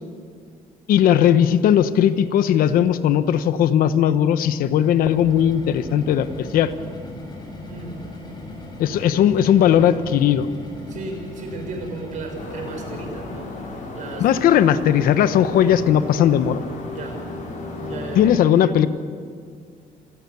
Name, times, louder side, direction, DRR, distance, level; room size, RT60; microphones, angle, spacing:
voice 1, 0.9-6.7 8.8-10.5 14.2-16.6 18.2-18.9, left 10 dB, 85° left, 12 dB, 1.1 m, -17 dB
sound 1, 4.6-13.8, left 1 dB, 30° left, 7.0 m, -38 dB
voice 2, 7.7-8.0 10.9-14.3 16.9-17.2 17.8-18.4, right 3 dB, 60° right, 2 dB, 6.6 m, -35 dB
sound 2, 12.3-18.3, left 2 dB, 60° left, 7.4 m, -34 dB
27.0 x 19.5 x 7.1 m, 2.1 s
cardioid pair, 140°, 15 cm